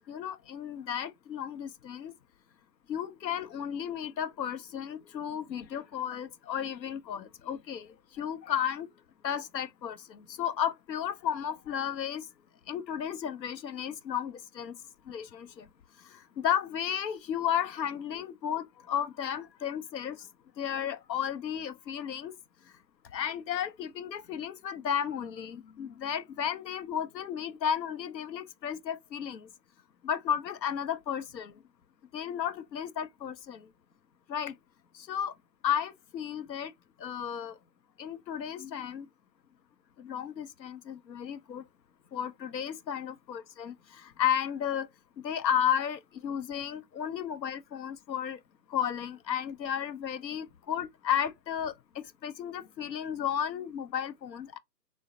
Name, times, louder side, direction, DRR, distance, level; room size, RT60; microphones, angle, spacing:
voice 1, 0.1-2.1 2.9-7.9 8.2-8.9 9.2-12.3 12.7-14.7 15.1-15.7 16.4-20.3 20.6-22.3 23.1-29.5 30.0-31.5 32.1-33.6 34.3-34.5 34.9-35.3 35.6-36.7 37.0-37.5 38.0-39.1 40.0-41.6 42.1-44.9 45.2-48.4 48.7-54.6, left 9 dB, 85° left, 0.6 m, -33 dB
3.8 x 2.0 x 2.6 m
figure-of-eight pair, 140°, 50 cm